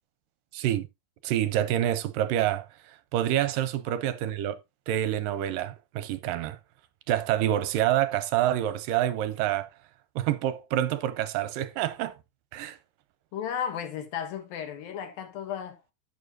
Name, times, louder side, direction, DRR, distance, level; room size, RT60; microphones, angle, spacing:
voice 1, 0.5-0.9 1.2-4.6 4.9-6.6 7.1-9.7 10.2-12.2 12.5-12.8, right 12 dB, 80° right, 2.3 m, -27 dB
voice 2, 13.3-15.8, left 8 dB, 80° left, 3.1 m, -34 dB
11.0 x 8.9 x 2.6 m
omnidirectional pair, 4.2 m